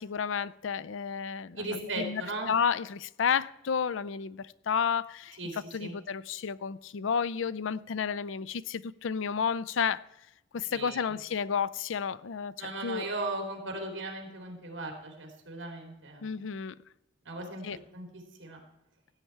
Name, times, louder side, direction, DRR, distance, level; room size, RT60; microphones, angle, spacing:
voice 1, 0.0-2.2 2.5-10.0 10.5-13.1 16.2-16.8 17.6-17.8, left 6 dB, 75° left, 0.4 m, -31 dB
voice 2, 1.5-2.5 5.4-5.5 5.8-5.9 10.7-11.0 12.6-16.4 17.2-17.6 17.9-18.1 18.4-18.6, right 2 dB, 70° right, 3.3 m, -37 dB
15.5 x 8.6 x 4.5 m
head